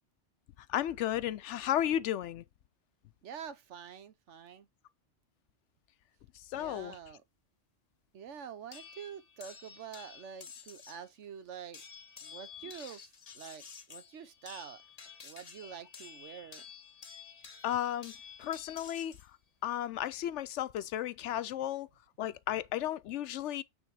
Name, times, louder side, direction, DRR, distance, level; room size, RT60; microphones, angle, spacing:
voice 1, 0.7-2.4 6.3-7.0 17.6-18.1 18.4-19.2 19.6-21.9 22.2-23.6, left 11 dB, 75° left, 0.9 m, -34 dB
voice 2, 3.2-4.7 6.5-7.2 8.1-11.8 12.2-13.0 13.3-14.8 15.2-16.7, right 8 dB, 75° right, 1.1 m, -47 dB
sound 1, 8.7-11.1 11.7-19.3 20.4-20.8, left 6 dB, 35° left, 0.9 m, -51 dB
8.8 x 3.5 x 4.7 m
omnidirectional pair, 1.2 m